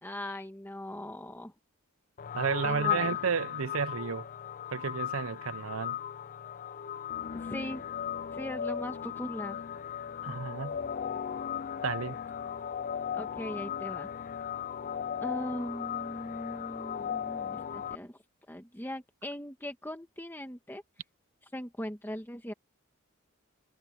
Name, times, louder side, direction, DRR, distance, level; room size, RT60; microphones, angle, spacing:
voice 1, 0.0-1.5 2.6-3.2 7.3-7.8 8.3-9.6 13.1-14.1 15.2-18.2 18.5-20.8 21.5-22.5, left 1 dB, 10° left, 1.5 m, -39 dB
sound 1, 2.2-17.9, left 9 dB, 40° left, 0.4 m, -36 dB
voice 2, 2.3-4.3 4.7-6.0 10.2-10.8 11.8-12.2, right 5 dB, 80° right, 0.7 m, -32 dB
head